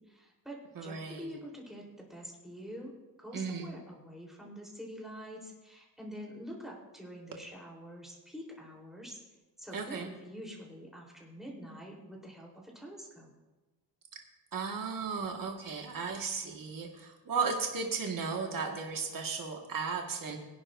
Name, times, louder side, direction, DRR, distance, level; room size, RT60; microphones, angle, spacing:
voice 1, 0.0-2.9 3.2-9.2 9.6-13.3, equal, ahead, -3 dB, 3.6 m, -46 dB
voice 2, 0.7-1.3 3.3-3.7 9.7-10.1 14.5-20.4, right 5 dB, 55° right, 1 dB, 1.7 m, -35 dB
23.0 x 10.5 x 2.6 m, 1.1 s
wide cardioid pair, 140°, 39 cm